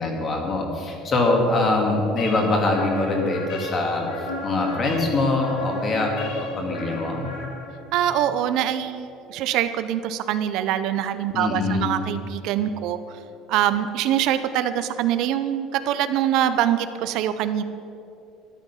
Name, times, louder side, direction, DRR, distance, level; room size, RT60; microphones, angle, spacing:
voice 1, 0.0-6.1 6.4-7.3 11.3-11.9, left 2 dB, 25° left, 1 dB, 1.9 m, -23 dB
sound 1, 2.2-8.0, left 2 dB, 80° left, 2.3 m, -35 dB
voice 2, 7.9-13.2 13.5-17.6, right 11 dB, 55° right, 11 dB, 0.5 m, -24 dB
12.5 x 11.5 x 5.7 m, 2.8 s
cardioid pair, 175°, 0 cm